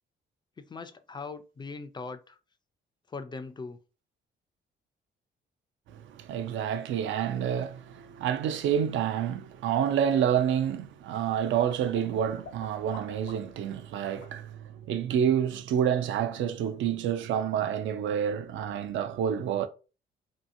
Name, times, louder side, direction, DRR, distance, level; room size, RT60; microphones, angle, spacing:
voice 1, 0.6-2.4 3.1-3.8, left 4 dB, 25° left, 0.3 m, -40 dB
voice 2, 5.9-19.7, right 9 dB, 75° right, 0.4 m, -28 dB
sound 1, 10.9-13.6 14.0-14.3 17.8-17.9 18.3-18.7, left 4 dB, 75° left, 0.8 m, -49 dB
2.8 x 2.3 x 2.5 m
cardioid pair, 90°, 20 cm